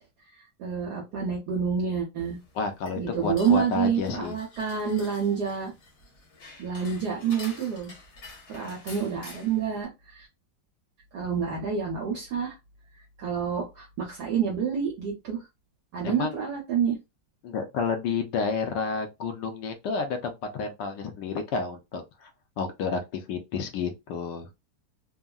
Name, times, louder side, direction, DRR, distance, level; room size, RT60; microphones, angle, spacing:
voice 1, 0.6-2.4 3.0-5.7 6.6-7.9 8.5-10.3 11.1-12.6 13.2-15.4 15.9-17.0, right 7 dB, 60° right, 1.2 m, -28 dB
sound 1, 2.2-9.9, left 3 dB, 45° left, 1.0 m, -48 dB
voice 2, 2.6-4.3 16.0-16.4 17.4-22.3 22.6-24.5, left 5 dB, 70° left, 1.2 m, -30 dB
3.5 x 2.1 x 2.3 m
omnidirectional pair, 2.2 m